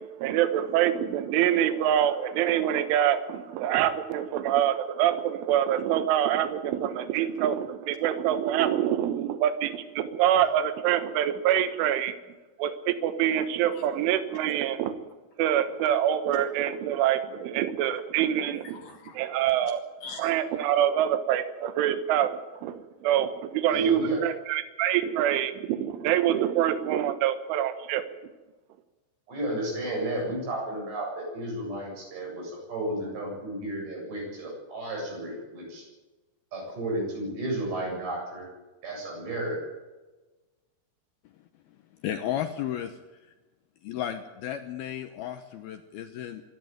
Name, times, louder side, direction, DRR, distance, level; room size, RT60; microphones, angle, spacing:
voice 1, 0.2-12.1 12.6-14.9 15.4-18.8 19.2-19.8 20.2-28.0, right 11 dB, 75° right, 10 dB, 3.7 m, -25 dB
voice 2, 18.6-19.2 20.0-20.3 42.0-43.0 43.8-46.4, left 10 dB, 80° left, 7 dB, 2.2 m, -34 dB
voice 3, 23.7-24.2 29.3-35.8 36.5-38.5 38.8-39.6, right 1 dB, 60° right, -1 dB, 9.8 m, -32 dB
25.0 x 12.0 x 9.2 m, 1.2 s
omnidirectional pair, 5.7 m